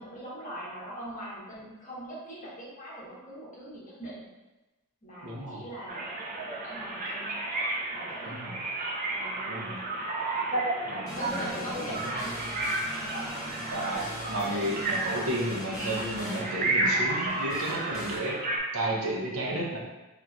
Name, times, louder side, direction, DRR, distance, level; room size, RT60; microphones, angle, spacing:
voice 1, 0.0-4.3 5.0-6.1 6.4-7.3 7.9-8.3 9.1-10.1 10.5-10.7 11.1-13.6, equal, 35° left, -7 dB, 1.1 m, -42 dB
voice 2, 5.2-5.6 8.3-8.6 9.5-9.8 10.9-12.2 13.6-18.4 18.7-19.8, right 1 dB, 75° right, -2 dB, 0.7 m, -33 dB
sound 1, 5.9-18.6, right 2 dB, 40° right, 0.4 m, -32 dB
sound 2, 11.1-18.2, left 1 dB, 65° left, 0.8 m, -41 dB
3.6 x 2.9 x 2.4 m, 1.1 s
head